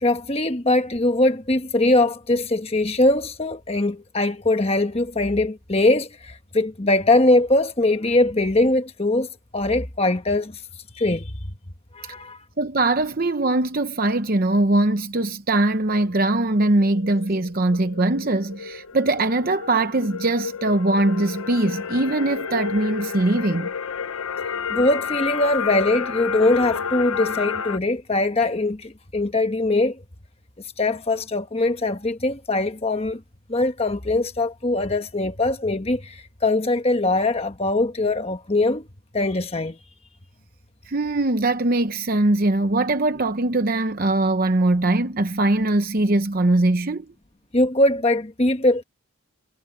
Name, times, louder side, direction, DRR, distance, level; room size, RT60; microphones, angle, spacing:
voice 1, 0.0-9.3 9.5-10.6 11.0-11.3 11.9-12.4 24.7-30.0 30.8-33.2 33.5-38.8 39.1-39.8 47.5-48.8, left 2 dB, 30° left, 1.2 m, -21 dB
voice 2, 12.6-23.7 40.9-47.0, right 2 dB, 45° right, 0.8 m, -21 dB
sound 1, 15.7-27.8, left 6 dB, 85° left, 0.8 m, -31 dB
head